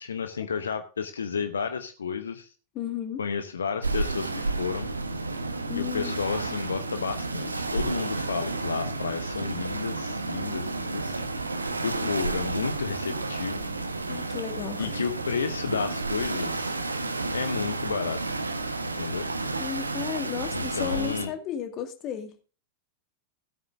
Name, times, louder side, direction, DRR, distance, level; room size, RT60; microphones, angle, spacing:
voice 1, 0.0-2.5 3.2-4.9 5.7-11.2 11.8-13.7 14.8-16.7 17.3-18.4 18.8-19.3 20.5-21.3, left 6 dB, 70° left, 9 dB, 0.9 m, -32 dB
voice 2, 2.8-3.2 5.7-6.2 12.0-12.1 14.1-14.9 19.6-22.4, left 9 dB, 35° left, 6 dB, 2.1 m, -33 dB
sound 1, 3.8-21.3, right 3 dB, 80° right, 1.2 m, -31 dB
16.5 x 9.1 x 2.6 m, 0.36 s
figure-of-eight pair, 90°, 0 cm